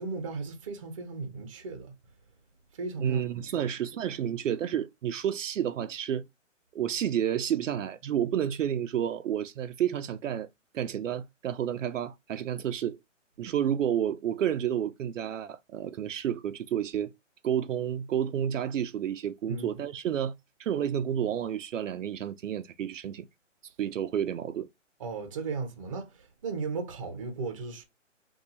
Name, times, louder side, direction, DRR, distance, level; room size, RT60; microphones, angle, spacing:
voice 1, 0.0-1.9 2.7-3.6 19.5-19.8 25.0-27.8, right 4 dB, 25° right, 0.6 m, -36 dB
voice 2, 3.0-6.2 6.7-10.5 10.7-13.0 13.4-17.1 17.4-20.3 20.6-23.3 23.8-24.7, right 9 dB, 75° right, 0.5 m, -30 dB
2.7 x 2.3 x 3.9 m
hypercardioid pair, 155°, 38 cm